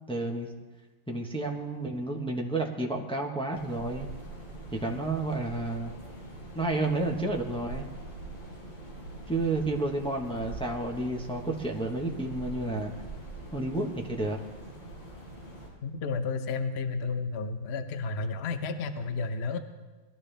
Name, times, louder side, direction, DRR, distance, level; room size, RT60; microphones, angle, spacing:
voice 1, 0.1-0.5 1.1-4.1 4.7-5.9 6.5-7.9 9.3-12.9 13.5-14.4, right 2 dB, 5° left, 0 dB, 0.4 m, -31 dB
sound 1, 3.5-15.7, right 2 dB, 80° left, 5.3 m, -43 dB
voice 2, 15.8-19.6, left 4 dB, 65° left, 8 dB, 0.6 m, -32 dB
21.0 x 14.0 x 3.4 m, 1.3 s
omnidirectional pair, 2.3 m